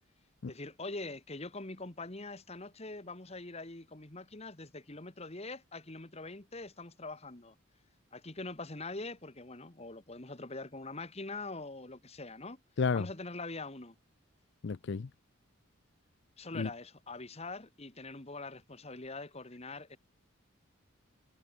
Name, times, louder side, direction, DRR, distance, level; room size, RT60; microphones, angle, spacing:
voice 1, 0.4-7.6 8.1-12.6 12.9-14.0 16.4-20.0, left 3 dB, 30° left, 1.7 m, -43 dB
voice 2, 14.6-15.1 16.5-16.7, left 5 dB, 55° left, 0.5 m, -31 dB
head